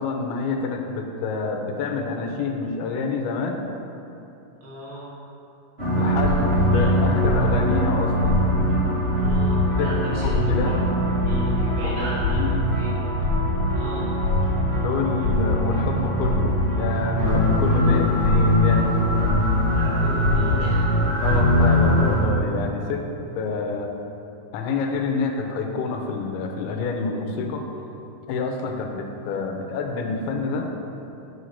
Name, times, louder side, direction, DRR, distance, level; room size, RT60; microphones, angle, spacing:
voice 1, 0.0-3.6 6.0-8.5 9.8-10.8 11.8-12.7 14.7-18.9 21.2-23.1 23.3-23.9 24.5-27.7 28.3-30.7, left 4 dB, 90° left, 3 dB, 2.7 m, -28 dB
voice 2, 4.6-5.1 6.7-6.9 9.2-10.4 10.6-12.4 12.7-12.9 13.7-14.1 17.8-18.1 19.8-21.0, right 2 dB, 75° right, -6 dB, 3.7 m, -35 dB
sound 1, 5.8-22.2, left 1 dB, 25° right, 1.3 m, -21 dB
7.7 x 6.4 x 5.7 m, 2.9 s
omnidirectional pair, 4.4 m